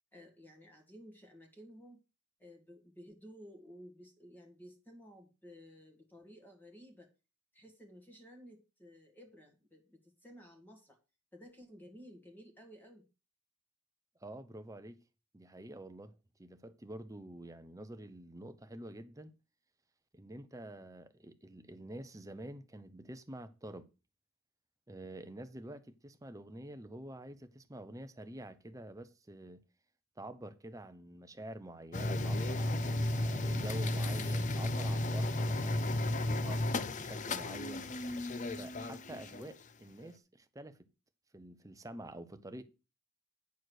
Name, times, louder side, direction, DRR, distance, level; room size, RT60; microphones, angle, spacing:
voice 1, 0.1-2.0 2.4-7.1 7.5-11.0 11.3-13.1, equal, 10° left, 2.0 m, -55 dB
voice 2, 14.2-15.0 15.3-16.1 16.4-19.3 20.1-23.9 24.9-29.6 30.2-36.7 37.0-37.9 38.5-40.9 41.3-42.6, right 1 dB, 15° right, 0.7 m, -48 dB
sound 1, 31.9-39.5, left 1 dB, 35° left, 0.5 m, -34 dB
9.4 x 4.7 x 6.3 m
head